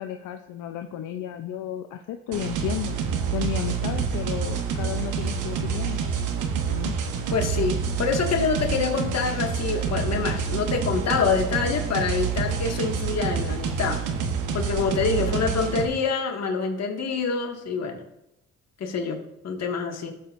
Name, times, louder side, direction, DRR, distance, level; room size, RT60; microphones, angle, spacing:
voice 1, 0.0-3.0 3.3-6.0 6.6-7.0 15.2-15.6, left 11 dB, 80° left, 6 dB, 0.6 m, -33 dB
sound 1, 2.3-15.9, right 6 dB, 85° right, 1.1 m, -27 dB
voice 2, 7.3-14.0 14.5-18.0 18.8-20.1, left 5 dB, 60° left, 2 dB, 1.8 m, -26 dB
16.5 x 7.1 x 2.5 m, 0.88 s
cardioid pair, 90°, 30 cm